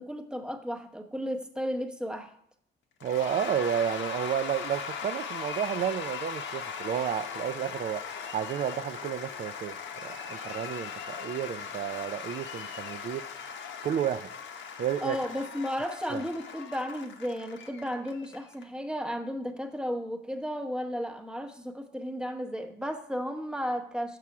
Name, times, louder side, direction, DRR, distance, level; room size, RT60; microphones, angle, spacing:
voice 1, 0.0-2.3 15.0-24.2, equal, 5° right, 0.8 m, -34 dB
Cheering / Applause / Crowd, 3.0-18.6, left 6 dB, 70° left, 0.9 m, -39 dB
voice 2, 3.0-8.0 8.3-13.2 13.8-14.3 14.8-15.2 16.1-16.2, right 9 dB, 45° right, 0.4 m, -31 dB
6.1 x 5.6 x 4.7 m
cardioid pair, 90°, 20 cm